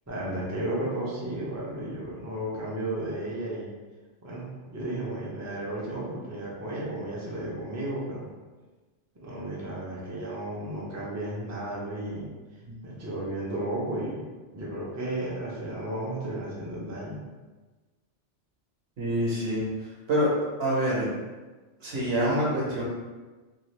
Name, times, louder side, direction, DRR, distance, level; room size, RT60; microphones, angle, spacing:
voice 1, 0.1-3.7 4.2-8.3 9.2-12.3 12.8-14.2 14.5-17.2, right 1 dB, 20° right, -6 dB, 0.4 m, -33 dB
voice 2, 19.0-19.6 20.1-20.3 20.6-21.1 21.8-22.8, equal, 60° right, -5 dB, 1.1 m, -26 dB
2.7 x 2.4 x 3.2 m, 1.3 s
omnidirectional pair, 1.2 m